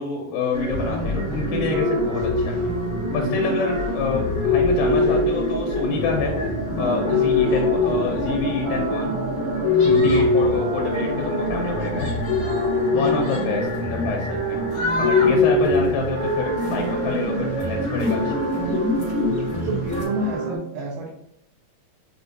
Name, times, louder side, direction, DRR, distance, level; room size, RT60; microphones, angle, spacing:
voice 1, 0.0-2.6 3.1-6.4 6.8-9.2 9.8-12.1 12.8-14.6 15.0-18.3, left 4 dB, 85° left, 0 dB, 2.4 m, -27 dB
sound 1, 0.5-20.0, left 3 dB, 45° left, 1.2 m, -24 dB
sound 2, 0.7-20.6, right 3 dB, 65° right, 2.2 m, -29 dB
sound 3, 1.3-2.1 2.3-20.4, left 2 dB, 65° left, 2.6 m, -34 dB
voice 2, 9.8-10.2 12.9-13.3 15.3-15.4 19.5-21.1, right 2 dB, 85° right, -6 dB, 2.5 m, -29 dB
6.0 x 2.5 x 2.6 m, 0.74 s
omnidirectional pair, 3.9 m